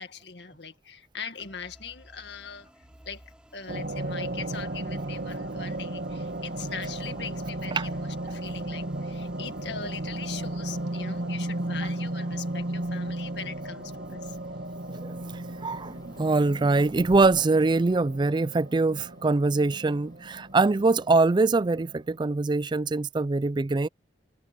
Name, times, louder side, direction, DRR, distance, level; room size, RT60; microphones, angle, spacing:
voice 1, 0.0-2.7 3.1-14.4, left 6 dB, 75° left, 2.0 m, -41 dB
sound 1, 1.4-16.7, equal, 5° right, 3.3 m, -57 dB
sound 2, 3.7-22.3, right 1 dB, 70° right, 2.3 m, -35 dB
sound 3, 13.4-13.7 14.1-20.7, equal, 25° left, 5.1 m, -53 dB
voice 2, 14.9-23.9, right 3 dB, 25° right, 0.4 m, -23 dB
head